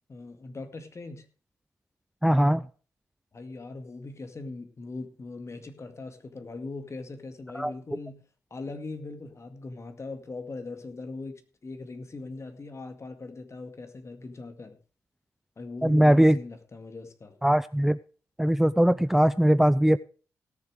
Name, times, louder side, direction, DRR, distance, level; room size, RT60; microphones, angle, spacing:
voice 1, 0.1-1.3 3.3-8.2 8.5-14.8 15.6-17.4, left 3 dB, 40° left, 8 dB, 2.0 m, -40 dB
voice 2, 2.2-2.7 7.5-7.7 15.8-16.4 17.4-18.0 18.4-20.0, right 1 dB, 5° right, 17 dB, 0.5 m, -20 dB
17.5 x 6.9 x 4.9 m, 0.39 s
hypercardioid pair, 45°, 7 cm